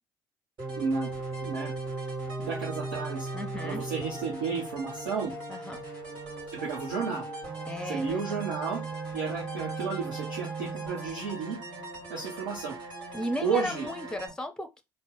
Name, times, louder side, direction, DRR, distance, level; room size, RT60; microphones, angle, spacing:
sound 1, 0.6-14.3, right 3 dB, 45° right, 2.7 m, -38 dB
voice 1, 0.8-1.1 1.4-1.7 2.4-3.3 3.6-5.3 6.5-7.3 7.8-8.8 9.1-11.6 12.1-12.8 13.4-13.9, right 5 dB, 75° right, 1.1 m, -32 dB
voice 2, 3.3-3.8 5.5-5.9 7.7-8.2 13.1-14.8, left 1 dB, 5° left, 0.6 m, -35 dB
4.3 x 2.2 x 3.8 m
figure-of-eight pair, 50°, 11 cm